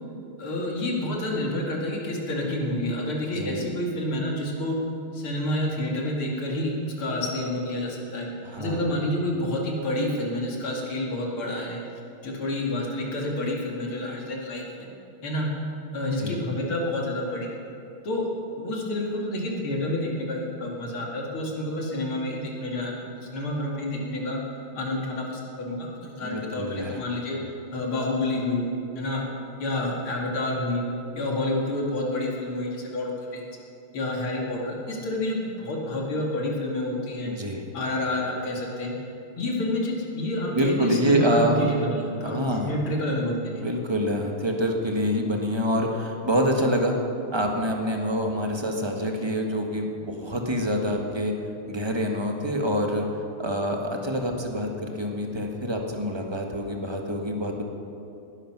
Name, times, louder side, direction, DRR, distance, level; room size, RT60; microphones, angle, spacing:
voice 1, 0.4-4.8 5.1-8.3 8.6-11.8 12.2-14.9 15.2-15.5 15.9-17.6 18.0-18.2 18.6-24.4 24.7-27.4 27.7-28.7 29.0-29.2 29.6-30.8 31.2-33.5 33.9-37.3 37.7-38.9 39.4-43.6, left 1 dB, 70° left, -1 dB, 3.3 m, -29 dB
voice 2, 3.3-3.7 8.4-8.9 16.2-16.4 26.2-27.0 37.2-37.7 40.5-41.7 42.2-42.7 43.6-46.9 47.3-51.3 51.7-53.0 53.4-57.6, equal, 15° right, 2 dB, 1.2 m, -26 dB
19.0 x 11.5 x 6.1 m, 2.8 s
omnidirectional pair, 2.4 m